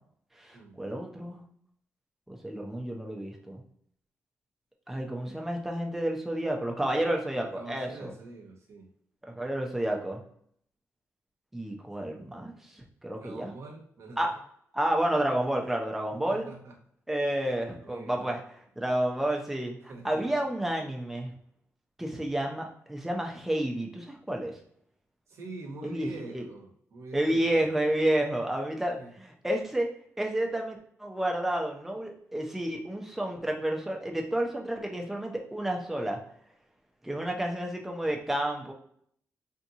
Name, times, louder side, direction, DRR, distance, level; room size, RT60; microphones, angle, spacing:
voice 1, 0.4-1.4 2.3-3.6 4.9-8.1 9.4-10.2 11.5-13.5 14.2-14.3 14.7-16.5 17.1-18.4 18.8-19.8 20.0-21.3 22.0-24.5 25.8-26.5 27.1-29.9 30.2-36.2 37.0-38.7, right 1 dB, 5° right, 1 dB, 0.5 m, -30 dB
voice 2, 7.3-8.9 9.7-10.0 12.1-12.2 13.2-14.3 16.1-16.8 17.8-18.4 19.9-20.4 25.3-27.7 29.0-29.1, right 3 dB, 65° right, 0 dB, 0.9 m, -45 dB
3.4 x 2.8 x 2.7 m, 0.67 s
wide cardioid pair, 170°, 5 cm